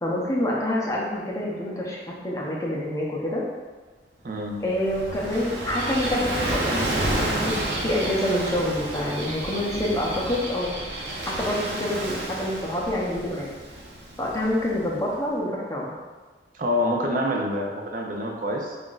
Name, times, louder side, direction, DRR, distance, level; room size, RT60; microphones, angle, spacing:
voice 1, 0.0-3.4 4.6-10.7 11.3-13.6 14.2-15.9, left 1 dB, 20° left, -4 dB, 0.6 m, -27 dB
voice 2, 4.2-4.6 16.5-18.8, left 1 dB, 50° right, 1 dB, 0.5 m, -26 dB
Gull seagull / Waves surf, 4.5-15.0, right 1 dB, 70° right, 0.8 m, -30 dB
5.7 x 2.5 x 2.4 m, 1.4 s
head